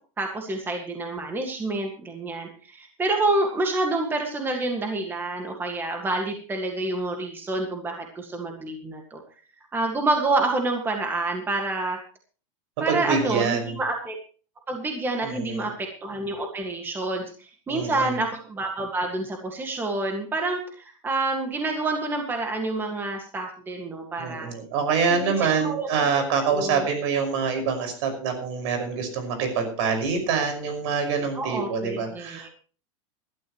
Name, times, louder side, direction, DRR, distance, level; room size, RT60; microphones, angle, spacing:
voice 1, 0.2-9.2 9.7-12.0 12.8-14.2 14.7-24.5 25.1-25.9 26.1-26.9 31.4-32.5, right 2 dB, 15° right, 3 dB, 1.9 m, -28 dB
voice 2, 12.9-13.8 15.2-15.7 17.7-18.2 24.2-32.5, right 5 dB, 65° right, 7 dB, 5.7 m, -26 dB
19.5 x 12.5 x 3.1 m, 0.38 s
supercardioid pair, 160°, 16 cm